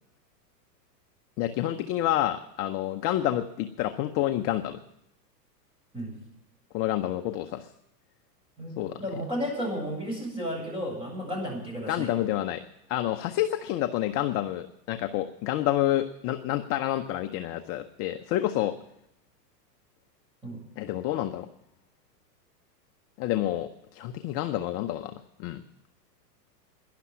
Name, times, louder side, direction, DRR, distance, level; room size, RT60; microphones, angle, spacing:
voice 1, 1.4-4.8 6.7-7.7 8.8-9.0 11.9-12.6 12.9-18.7 20.8-21.5 23.2-25.6, left 13 dB, 30° left, 7 dB, 0.6 m, -28 dB
voice 2, 8.6-12.1 20.4-20.6, equal, 10° right, -2 dB, 7.7 m, -33 dB
12.0 x 11.0 x 9.5 m, 0.84 s
hypercardioid pair, 130°, 49 cm